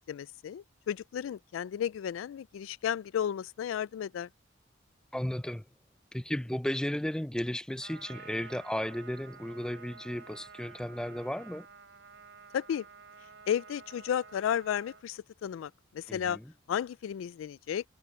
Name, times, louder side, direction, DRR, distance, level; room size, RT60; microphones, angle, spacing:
voice 1, 0.1-4.3 12.5-12.9 13.5-16.4 16.7-17.8, left 9 dB, 85° left, 0.3 m, -33 dB
voice 2, 5.1-5.7 6.1-11.7 16.1-16.5, left 1 dB, 5° left, 0.4 m, -34 dB
Trumpet, 7.8-15.0, right 5 dB, 70° right, 4.0 m, -51 dB
head